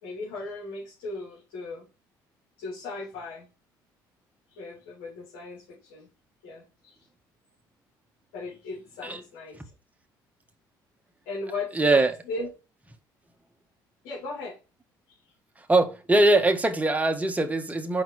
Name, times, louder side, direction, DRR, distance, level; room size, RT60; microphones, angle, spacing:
voice 1, 0.0-1.9 2.6-3.5 4.5-6.1 6.4-7.1 8.3-9.6 11.2-12.5 14.0-14.6 15.1-15.3, left 3 dB, 75° left, 3.3 m, -37 dB
voice 2, 11.7-12.1 15.7-18.0, right 2 dB, 15° right, 1.6 m, -22 dB
5.6 x 4.4 x 4.7 m
hypercardioid pair, 60°, 10 cm